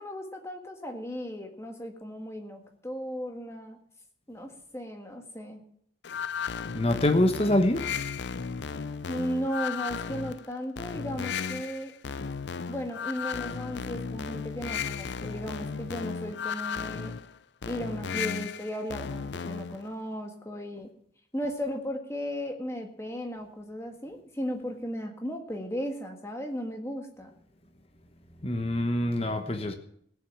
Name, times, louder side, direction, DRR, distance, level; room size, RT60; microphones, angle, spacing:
voice 1, 0.0-3.8 4.3-5.6 9.1-11.9 12.7-17.2 17.7-20.9 21.3-27.3, equal, 15° left, 3 dB, 1.6 m, -36 dB
sound 1, 6.0-19.8, left 6 dB, 70° left, 0.5 m, -35 dB
voice 2, 6.7-7.8 28.4-29.7, left 1 dB, 30° left, 6 dB, 1.0 m, -25 dB
16.5 x 7.3 x 7.0 m, 0.67 s
head